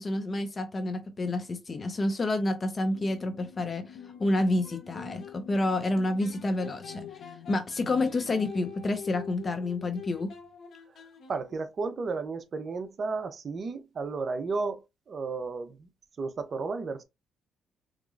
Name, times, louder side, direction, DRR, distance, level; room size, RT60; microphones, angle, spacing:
voice 1, 0.0-4.0 4.2-7.0 7.5-10.3, left 2 dB, 35° left, 0.5 m, -29 dB
sound 1, 2.9-8.5, left 8 dB, 85° left, 0.4 m, -49 dB
sound 2, 4.0-5.4 6.2-11.7, left 7 dB, 60° left, 1.0 m, -46 dB
voice 2, 11.3-15.9 16.2-17.0, right 4 dB, 45° right, 0.6 m, -33 dB
3.6 x 2.9 x 2.5 m
cardioid pair, 90°, 0 cm